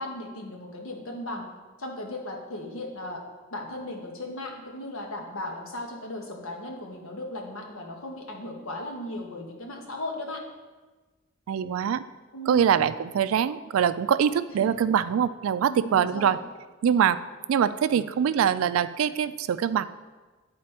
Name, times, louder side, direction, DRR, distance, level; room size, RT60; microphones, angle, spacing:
voice 1, 0.0-1.5 1.8-3.2 3.5-10.4 12.3-12.8 14.5-14.7 15.7-16.4, left 1 dB, 90° left, 1 dB, 1.3 m, -36 dB
voice 2, 11.5-12.0 12.5-16.4 16.8-17.2 17.5-19.9, right 8 dB, 80° right, 14 dB, 0.3 m, -23 dB
9.5 x 4.2 x 4.3 m, 1.3 s
head